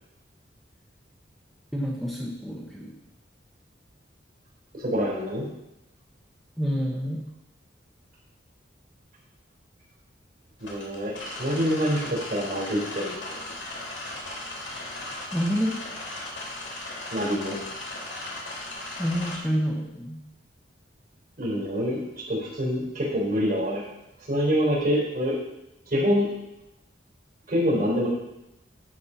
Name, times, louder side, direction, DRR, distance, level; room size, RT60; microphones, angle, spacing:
voice 1, 1.7-3.0 6.6-7.2 15.3-15.8 19.0-20.2, equal, ahead, -2 dB, 1.0 m, -28 dB
voice 2, 4.8-5.4 10.7-13.5 17.1-17.6 21.4-23.8 24.3-25.3 25.9-26.3 27.5-28.1, equal, 50° right, -4 dB, 4.2 m, -26 dB
sound 1, 10.6-19.4, left 2 dB, 85° left, 3.2 m, -37 dB
12.0 x 4.4 x 5.7 m, 0.89 s
head